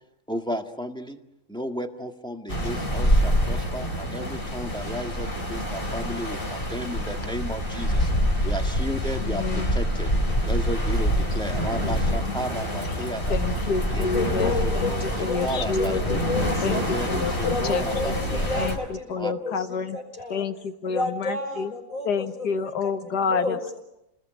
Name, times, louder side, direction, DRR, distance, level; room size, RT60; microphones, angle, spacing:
voice 1, 0.3-1.2 1.5-8.1 8.4-10.1 10.4-13.4 13.9-16.1 16.6-18.6 19.1-19.3, equal, 5° left, 4 dB, 1.7 m, -34 dB
sound 1, 2.5-18.8, equal, 30° left, 4.4 m, -26 dB
voice 2, 9.2-9.8 11.8-12.4 13.3-14.9 15.2-16.2 16.6-16.8 17.1-18.2 18.6-18.8 19.1-20.0 20.3-21.7 22.1-23.6, left 5 dB, 80° left, 9 dB, 1.9 m, -29 dB
voice 3, 14.1-16.9 17.4-20.4 20.8-23.8, left 3 dB, 55° left, 2 dB, 6.5 m, -31 dB
29.5 x 20.5 x 9.3 m, 0.87 s
omnidirectional pair, 1.7 m